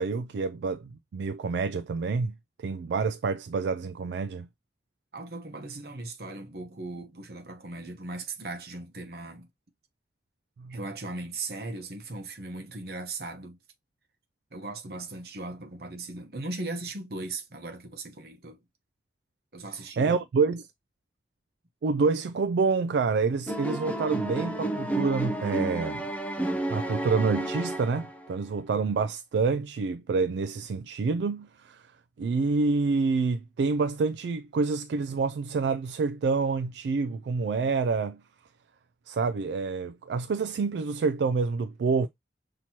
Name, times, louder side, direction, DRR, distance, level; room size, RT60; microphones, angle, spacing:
voice 1, 0.0-4.5 10.6-10.8 20.0-20.6 21.8-26.1 26.7-31.9 32.2-38.2 39.1-42.1, right 4 dB, 70° right, 0.3 m, -27 dB
voice 2, 5.1-9.5 10.7-13.6 14.5-18.6 19.5-20.2, right 2 dB, 55° right, 0.9 m, -38 dB
sound 1, 23.5-28.3, right 1 dB, 10° left, 0.5 m, -31 dB
5.9 x 2.9 x 2.8 m
head